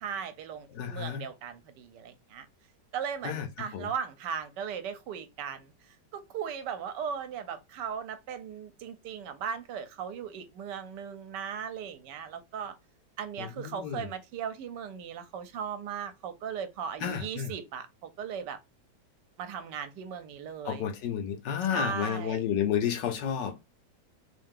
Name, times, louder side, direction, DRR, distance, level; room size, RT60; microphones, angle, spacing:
voice 1, 0.0-2.5 2.9-5.7 6.1-12.8 13.2-18.6 19.4-20.9 21.7-22.5, right 7 dB, 75° right, 1.3 m, -37 dB
voice 2, 0.7-1.2 3.2-3.5 3.7-3.9 13.4-14.1 17.0-17.5 20.6-23.6, left 8 dB, 80° left, 1.4 m, -31 dB
3.4 x 2.7 x 3.6 m
omnidirectional pair, 1.9 m